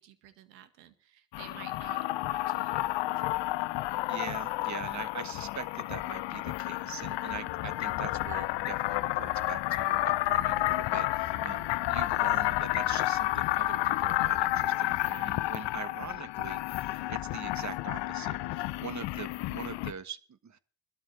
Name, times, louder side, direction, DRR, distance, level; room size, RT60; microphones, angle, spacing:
voice 1, 0.0-3.4 7.4-7.8 11.3-11.9, right 11 dB, 85° right, 11 dB, 1.9 m, -53 dB
sound 1, 1.3-19.9, left 17 dB, 60° left, 0.9 m, -31 dB
voice 2, 4.1-20.6, right 7 dB, 35° right, 14 dB, 1.5 m, -43 dB
21.0 x 12.5 x 3.3 m, 0.39 s
hypercardioid pair, 60°, 49 cm